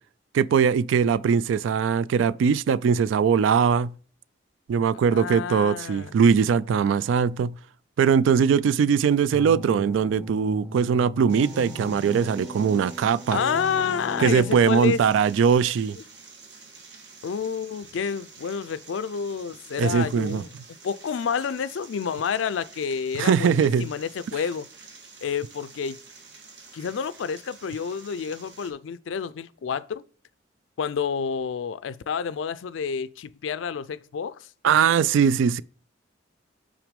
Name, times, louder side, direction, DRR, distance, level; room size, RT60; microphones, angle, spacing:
voice 1, 0.3-3.9 4.7-7.5 8.0-13.4 14.2-16.0 19.8-20.4 23.2-23.9 34.6-35.6, right 6 dB, 85° right, 0.3 m, -21 dB
voice 2, 5.1-6.1 13.3-15.0 17.2-20.5 20.8-24.7 25.2-26.0 26.7-30.0 30.8-34.5, left 6 dB, 85° left, 0.4 m, -29 dB
sound 1, 9.3-14.8, equal, 15° right, 0.7 m, -37 dB
sound 2, 11.3-28.7, right 4 dB, 70° right, 1.4 m, -48 dB
6.1 x 3.9 x 5.1 m
head